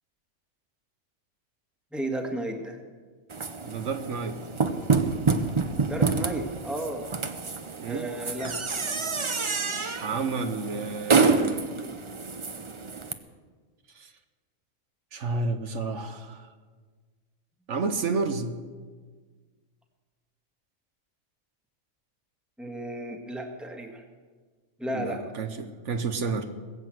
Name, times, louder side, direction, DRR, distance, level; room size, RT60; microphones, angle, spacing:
voice 1, 1.9-2.8 5.9-7.0 7.9-8.6 22.6-24.0 24.8-25.2, right 1 dB, ahead, 2 dB, 1.5 m, -33 dB
sound 1, 3.3-13.1, right 4 dB, 30° right, 0.6 m, -28 dB
voice 2, 3.6-4.4 7.8-8.1 10.0-11.7 13.9-14.1 15.1-16.5 17.7-18.5 24.9-26.5, right 4 dB, 70° right, 7 dB, 1.3 m, -30 dB
20.0 x 7.9 x 7.7 m, 1.5 s
omnidirectional pair, 1.3 m